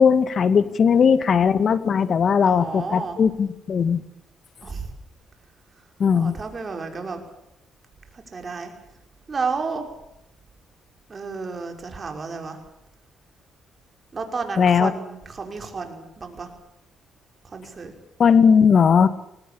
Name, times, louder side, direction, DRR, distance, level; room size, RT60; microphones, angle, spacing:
voice 1, 0.0-4.0 6.0-6.3 14.6-14.9 18.2-19.1, left 6 dB, 50° left, 12 dB, 1.9 m, -18 dB
voice 2, 0.6-1.2 2.4-3.2 4.6-4.8 6.1-7.2 8.3-8.7 9.3-9.8 11.1-12.6 14.1-16.5 17.5-17.9, right 4 dB, 35° right, 4 dB, 5.6 m, -31 dB
21.5 x 19.0 x 8.9 m, 0.86 s
cardioid pair, 90°, 0 cm